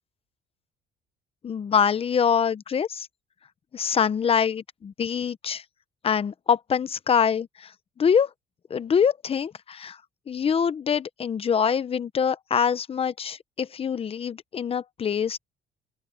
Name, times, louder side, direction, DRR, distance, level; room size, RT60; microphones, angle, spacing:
voice 1, 1.4-3.1 3.7-5.6 6.0-7.7 8.0-8.3 8.7-10.0 10.3-15.4, left 7 dB, 35° left, 0.9 m, -24 dB
open air
cardioid pair, 110°, 17 cm